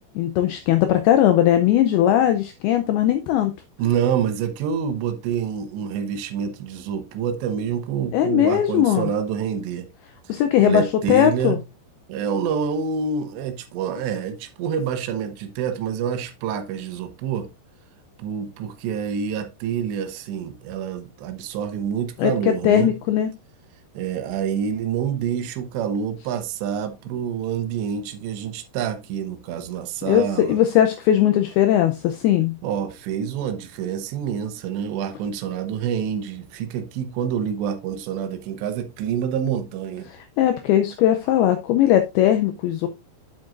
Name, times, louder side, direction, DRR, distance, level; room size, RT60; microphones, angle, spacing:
voice 1, 0.2-3.5 8.1-9.1 10.3-11.6 22.2-23.3 30.1-32.5 40.4-42.9, left 11 dB, 90° left, 2.2 m, -19 dB
voice 2, 3.8-9.9 10.3-11.6 12.1-17.5 18.2-22.9 24.0-30.6 32.6-40.1, right 7 dB, 80° right, 3.1 m, -27 dB
8.7 x 7.7 x 2.5 m
omnidirectional pair, 5.2 m